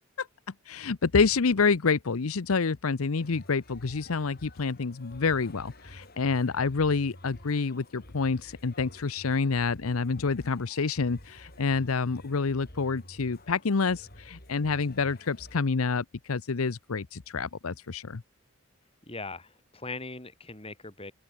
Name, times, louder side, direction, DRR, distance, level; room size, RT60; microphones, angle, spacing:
voice 1, 0.7-18.2, left 4 dB, 80° left, 0.7 m, -28 dB
sound 1, 3.2-15.6, left 1 dB, 45° left, 6.3 m, -51 dB
voice 2, 19.1-21.1, left 3 dB, 25° left, 4.3 m, -40 dB
open air
head